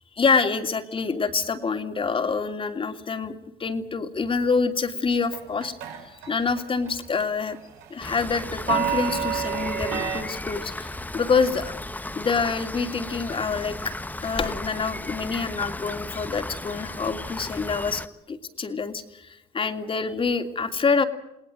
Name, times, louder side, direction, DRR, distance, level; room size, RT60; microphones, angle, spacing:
voice 1, 0.2-3.3 3.6-5.7 6.0-7.6 7.9-11.8 12.1-13.9 14.2-18.0 18.3-21.0, left 5 dB, 30° left, 7 dB, 2.8 m, -26 dB
sound 1, 5.3-6.3 6.6-6.9 7.2-10.2, right 8 dB, 90° right, 4.8 m, -29 dB
Rain, 8.0-18.1, left 2 dB, 10° left, 1.3 m, -35 dB
29.5 x 19.0 x 7.8 m, 0.84 s
cardioid pair, 110°, 17 cm